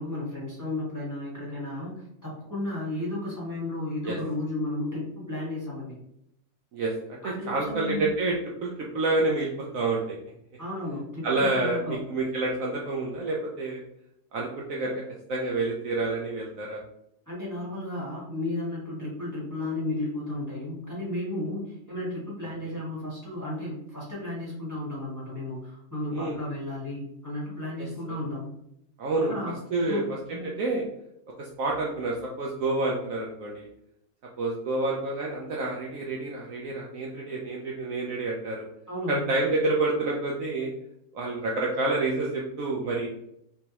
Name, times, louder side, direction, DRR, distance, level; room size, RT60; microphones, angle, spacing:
voice 1, 0.0-5.9 7.2-8.1 10.6-12.0 17.3-28.5 29.2-30.5 38.9-39.3, left 1 dB, 10° left, -8 dB, 1.2 m, -33 dB
voice 2, 6.7-8.3 8.6-10.2 11.2-13.8 14.3-15.0 15.3-16.8 22.6-22.8 26.1-26.4 27.8-27.9 29.0-29.3 29.7-30.0 30.3-30.8 31.4-33.7 34.4-38.7 39.1-40.7 41.1-43.1, right 2 dB, 65° right, -2 dB, 0.9 m, -28 dB
3.4 x 3.0 x 2.8 m, 0.76 s
omnidirectional pair, 1.7 m